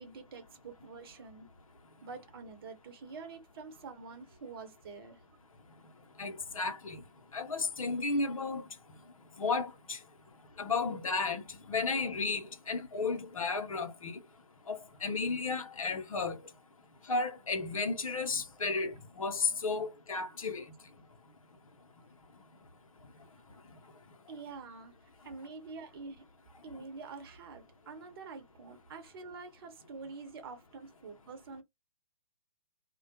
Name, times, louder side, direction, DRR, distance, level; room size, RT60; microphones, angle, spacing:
voice 1, 0.0-1.5 2.0-5.2 24.3-24.9 25.2-26.3 26.6-31.6, right 4 dB, 40° right, 0.9 m, -46 dB
voice 2, 6.2-7.0 7.3-8.6 9.4-10.0 10.6-11.4 11.7-14.1 14.7-16.4 17.1-20.6, left 4 dB, 70° left, 0.7 m, -33 dB
2.3 x 2.1 x 2.7 m
figure-of-eight pair, 130°, 18 cm